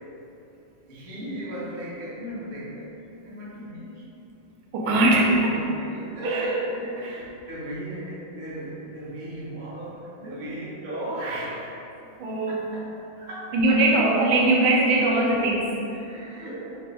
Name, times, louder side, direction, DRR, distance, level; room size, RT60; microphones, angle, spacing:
voice 1, 0.9-2.9 3.2-4.1 5.1-11.7 12.5-12.9 13.2-13.8 14.8-15.6 15.9-16.8, right 1 dB, 60° right, -7 dB, 0.5 m, -35 dB
voice 2, 4.7-5.6 6.2-6.4 7.0-7.2 12.2-12.7 13.5-15.8, right 2 dB, 80° right, -2 dB, 1.4 m, -21 dB
4.2 x 2.8 x 3.3 m, 2.9 s
omnidirectional pair, 2.2 m